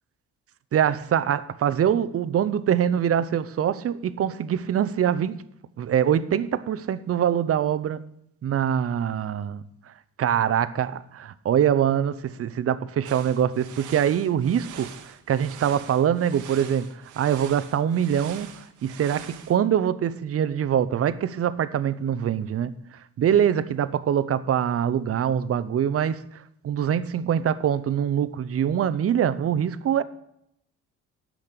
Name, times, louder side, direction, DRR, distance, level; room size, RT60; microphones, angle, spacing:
voice 1, 0.7-5.4 5.8-8.0 8.4-9.6 10.2-14.9 15.3-18.5 18.8-22.7 23.2-26.2 26.6-30.0, right 9 dB, 50° right, 0.7 m, -24 dB
sound 1, 13.0-19.6, right 9 dB, 80° right, 1.1 m, -44 dB
8.6 x 6.3 x 8.3 m
cardioid pair, 90°, 30 cm